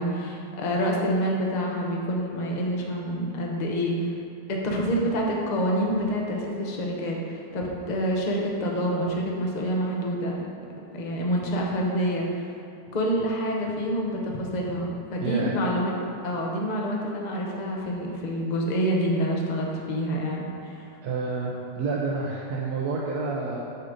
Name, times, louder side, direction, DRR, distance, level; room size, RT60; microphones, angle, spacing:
voice 1, 0.0-4.1 4.5-10.3 10.8-12.5 12.9-15.9 16.2-20.9, equal, 35° left, -1 dB, 0.7 m, -27 dB
voice 2, 15.2-15.6 21.0-23.6, right 4 dB, 70° right, -3 dB, 1.1 m, -29 dB
7.2 x 3.8 x 6.4 m, 2.6 s
omnidirectional pair, 1.9 m